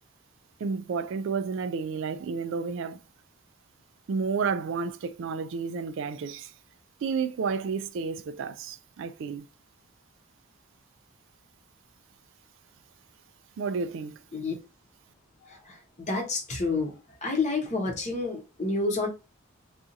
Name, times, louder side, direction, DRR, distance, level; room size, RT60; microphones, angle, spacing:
voice 1, 0.6-3.0 4.1-6.5 7.0-9.5 13.6-14.2, right 5 dB, 60° right, 0.3 m, -31 dB
voice 2, 16.1-16.9 17.2-19.1, left 3 dB, 35° left, 0.9 m, -29 dB
2.6 x 2.4 x 3.8 m
head